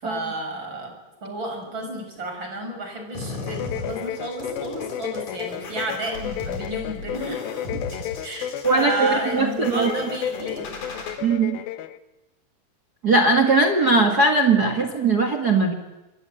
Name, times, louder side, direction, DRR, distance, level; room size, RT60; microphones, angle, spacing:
voice 1, 0.0-0.9 1.2-7.5 8.2-10.7, right 2 dB, 25° right, 3 dB, 7.0 m, -31 dB
sound 1, 3.1-11.1, left 3 dB, 40° left, 5.0 m, -36 dB
sound 2, 3.4-12.0, left 10 dB, 75° left, 2.3 m, -33 dB
voice 2, 8.6-9.9 11.2-11.6 13.0-15.7, right 3 dB, 70° right, 6 dB, 0.9 m, -19 dB
26.5 x 22.0 x 8.7 m, 1.0 s
omnidirectional pair, 5.3 m